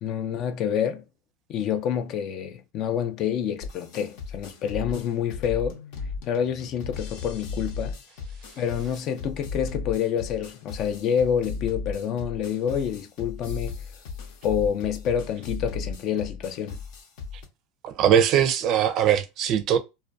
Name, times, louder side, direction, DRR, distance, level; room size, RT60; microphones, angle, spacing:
voice 1, 0.0-1.0 1.5-5.8 6.3-8.0 8.6-13.8 14.4-16.8, left 8 dB, 45° left, 0.4 m, -27 dB
sound 1, 3.6-17.5, left 4 dB, 65° left, 0.7 m, -36 dB
voice 2, 17.8-19.8, right 9 dB, 50° right, 0.5 m, -21 dB
2.4 x 2.2 x 2.5 m
supercardioid pair, 115°, 0 cm